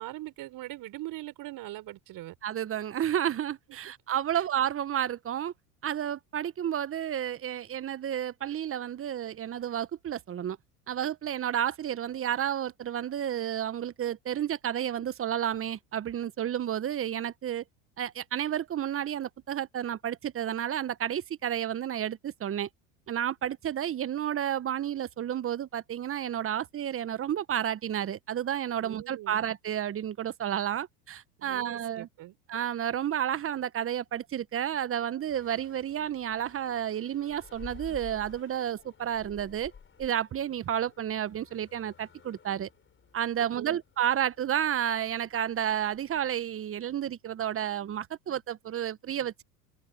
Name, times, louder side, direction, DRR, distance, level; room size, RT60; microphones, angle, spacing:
voice 1, 0.0-2.3 3.7-3.9 4.3-4.5 28.8-29.4 31.4-32.4 43.4-43.8, right 16 dB, 50° right, 5.3 m, -42 dB
voice 2, 2.4-5.5 5.8-10.6 10.9-17.6 18.0-22.7 23.1-32.1 32.5-39.7 40.0-42.7 43.1-49.4, right 10 dB, 30° right, 1.2 m, -31 dB
sound 1, 35.3-46.3, left 6 dB, 25° left, 6.3 m, -53 dB
open air
hypercardioid pair, 80°, 44 cm